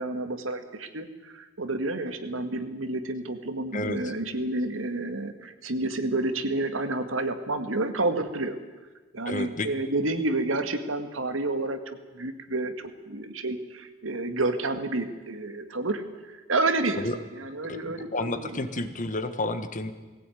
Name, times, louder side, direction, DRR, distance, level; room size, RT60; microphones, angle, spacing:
voice 1, 0.0-8.6 9.1-16.0 16.3-17.1 17.3-18.6, right 2 dB, 90° right, 8 dB, 1.9 m, -30 dB
voice 2, 3.7-4.1 9.2-9.7 17.0-17.2 17.7-19.9, left 2 dB, 40° left, 10 dB, 1.4 m, -31 dB
19.5 x 16.5 x 9.3 m, 1.3 s
head